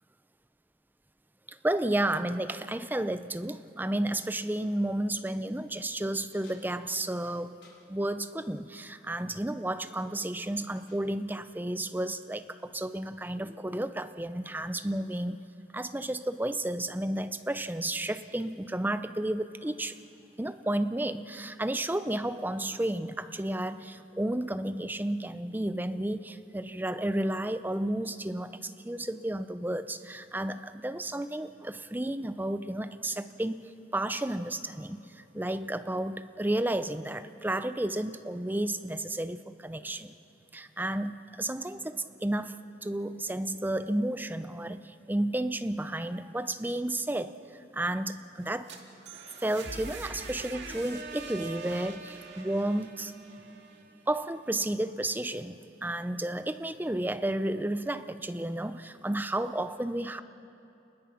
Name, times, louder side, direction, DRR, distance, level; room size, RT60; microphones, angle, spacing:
voice 1, 1.5-7.5 7.9-15.4 15.7-20.0 20.4-40.1 40.5-48.7 49.4-53.1 54.1-60.2, right 1 dB, 10° right, 11 dB, 0.6 m, -32 dB
sound 1, 6.3-7.9 9.3-9.6 10.0-11.1, left 3 dB, 75° left, 4.1 m, -61 dB
sound 2, 48.4-54.3, right 4 dB, 75° right, 2.3 m, -43 dB
29.0 x 20.5 x 6.0 m, 2.8 s
head